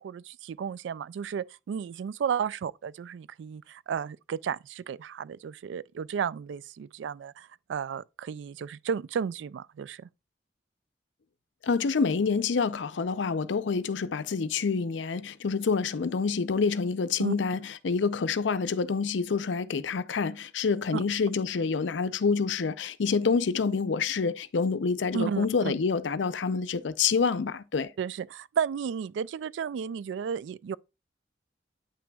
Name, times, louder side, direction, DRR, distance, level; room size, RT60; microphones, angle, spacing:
voice 1, 0.0-10.1 17.2-17.3 20.9-21.0 25.1-25.7 28.0-30.8, right 7 dB, 80° right, 0.3 m, -33 dB
voice 2, 11.6-27.9, left 5 dB, 85° left, 0.5 m, -27 dB
8.2 x 6.0 x 2.3 m
head